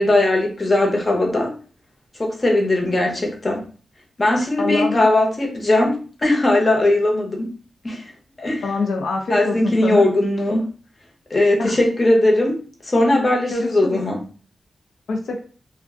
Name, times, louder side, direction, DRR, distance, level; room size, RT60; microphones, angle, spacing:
voice 1, 0.0-1.5 2.2-3.6 4.2-7.5 7.8-8.1 8.4-8.6 9.3-10.7 11.3-14.2, left 1 dB, 30° left, 1 dB, 0.8 m, -19 dB
voice 2, 4.6-5.1 8.6-10.1 11.6-11.8 13.5-14.0 15.1-15.4, left 3 dB, 85° left, 3 dB, 0.5 m, -24 dB
2.5 x 2.2 x 3.5 m, 0.38 s
wide cardioid pair, 110°, 0 cm